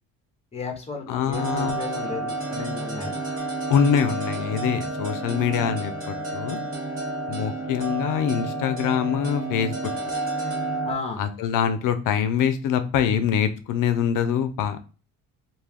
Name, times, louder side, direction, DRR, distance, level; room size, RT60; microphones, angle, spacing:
voice 1, 0.5-3.1 10.8-11.2, left 4 dB, 20° left, 3 dB, 0.8 m, -34 dB
voice 2, 1.1-1.8 3.7-6.6 7.3-9.7 11.2-14.8, left 8 dB, 65° left, 10 dB, 0.5 m, -24 dB
sound 1, 1.3-10.9, right 2 dB, 40° right, 1.1 m, -30 dB
2.4 x 2.3 x 3.3 m, 0.36 s
cardioid pair, 100°, 35 cm